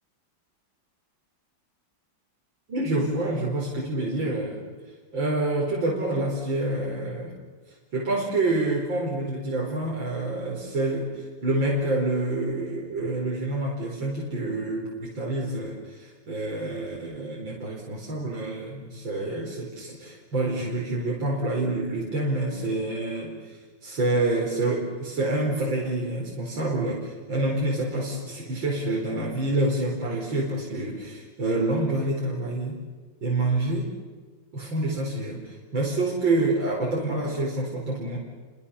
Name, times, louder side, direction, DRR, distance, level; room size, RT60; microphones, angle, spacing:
voice 1, 2.7-4.6 5.1-7.4 7.9-32.8 33.2-33.9 34.5-38.2, right 2 dB, 70° right, -3 dB, 5.6 m, -27 dB
30.0 x 26.5 x 7.2 m, 1.5 s
omnidirectional pair, 2.2 m